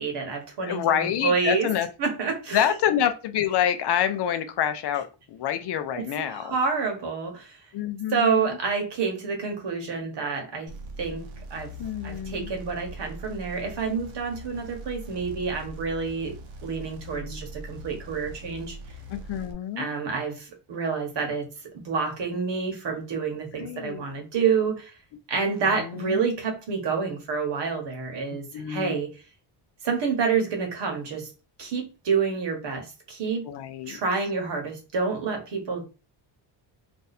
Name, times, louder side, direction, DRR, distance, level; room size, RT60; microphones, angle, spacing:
voice 1, 0.0-1.7 2.0-2.8 5.9-7.6 8.1-10.7 11.0-11.2 11.5-11.7 12.0-16.3 16.6-18.8 19.8-21.5 21.8-24.9 25.3-29.1 29.8-31.3 31.6-33.5 33.9-35.9, right 5 dB, 60° right, 1.2 m, -28 dB
voice 2, 0.6-1.9 2.5-6.5 7.7-8.6 11.8-12.5 17.1-17.4 19.1-19.9 23.6-24.0 25.6-26.2 28.3-29.0 33.5-34.0, left 10 dB, 60° left, 0.5 m, -27 dB
sound 1, 10.7-19.5, right 1 dB, 80° right, 0.9 m, -41 dB
2.6 x 2.6 x 4.0 m
cardioid pair, 165°, 47 cm